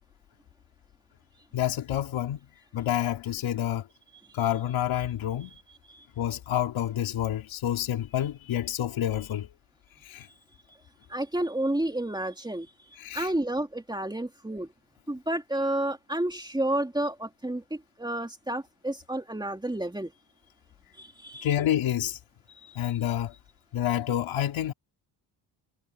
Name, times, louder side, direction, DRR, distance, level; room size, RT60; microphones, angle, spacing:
voice 1, 1.5-2.4 2.7-3.9 4.3-5.5 6.2-9.5 10.0-10.3 13.0-13.3 21.4-22.2 22.7-23.3 23.7-24.7, left 11 dB, 80° left, 3.0 m, -28 dB
voice 2, 5.4-6.0 11.1-12.7 13.1-14.7 15.1-20.1 21.0-21.5 22.5-22.9, right 1 dB, 10° right, 2.8 m, -31 dB
cardioid pair, 90°, 47 cm